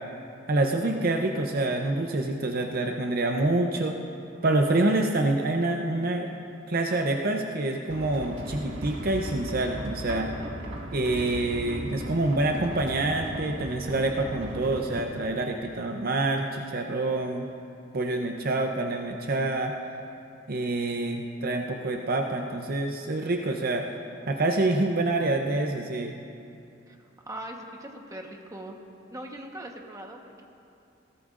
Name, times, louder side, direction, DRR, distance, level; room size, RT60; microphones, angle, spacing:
voice 1, 0.5-4.0 4.4-6.3 6.7-10.3 10.9-17.5 17.9-19.7 20.5-23.9 24.3-26.2, right 2 dB, 50° right, 3 dB, 0.7 m, -27 dB
sound 1, 7.9-15.0, equal, 65° right, 1.7 m, -37 dB
voice 2, 27.2-28.8 29.1-30.4, right 1 dB, 15° right, 1 dB, 1.1 m, -40 dB
20.5 x 17.0 x 2.5 m, 2.7 s
head